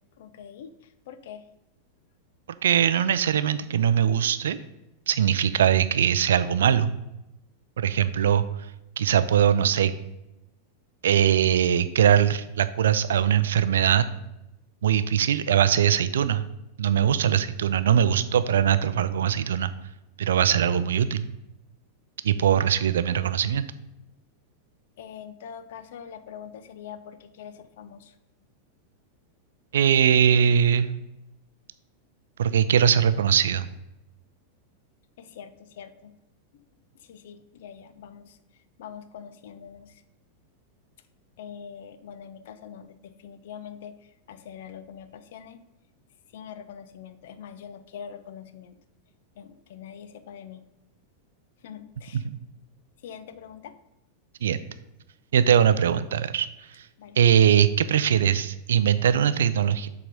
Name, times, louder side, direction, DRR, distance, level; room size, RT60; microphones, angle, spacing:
voice 1, 0.2-0.7 1.1-1.5 25.0-28.1 35.2-36.1 37.0-38.4 38.8-40.0 41.4-45.6 46.3-48.8 49.4-50.6 51.6-52.2 53.0-53.8 57.0-57.2, left 8 dB, 55° left, 12 dB, 0.5 m, -43 dB
voice 2, 2.6-4.6 5.1-6.9 7.8-8.4 9.0-9.9 11.0-14.1 14.8-16.4 16.8-19.7 20.2-21.3 22.2-23.7 29.7-31.0 32.4-33.7 52.1-52.4 54.4-54.6 55.3-56.5 57.2-59.9, right 9 dB, 65° right, 13 dB, 0.4 m, -21 dB
7.2 x 4.0 x 5.1 m, 0.88 s
figure-of-eight pair, 90°, 0 cm